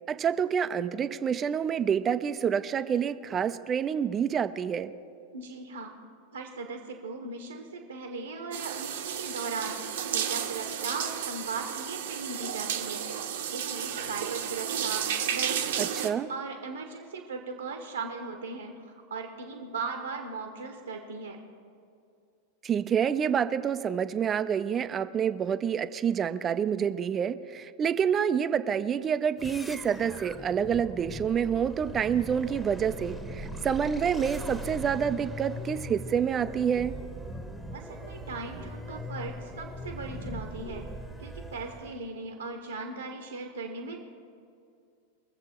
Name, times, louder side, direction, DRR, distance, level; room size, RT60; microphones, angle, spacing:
voice 1, 0.1-4.9 15.8-16.3 22.6-36.9, right 8 dB, 25° right, 13 dB, 0.6 m, -28 dB
voice 2, 5.3-6.0 6.3-13.0 13.5-21.4 37.7-40.9 41.2-44.0, right 4 dB, 75° right, 4 dB, 1.2 m, -38 dB
sound 1, 8.5-16.1, right 9 dB, 55° right, 1.0 m, -32 dB
sound 2, 29.4-42.0, equal, ahead, 1.1 m, -40 dB
22.5 x 7.7 x 4.4 m, 2.4 s
figure-of-eight pair, 90°, 0 cm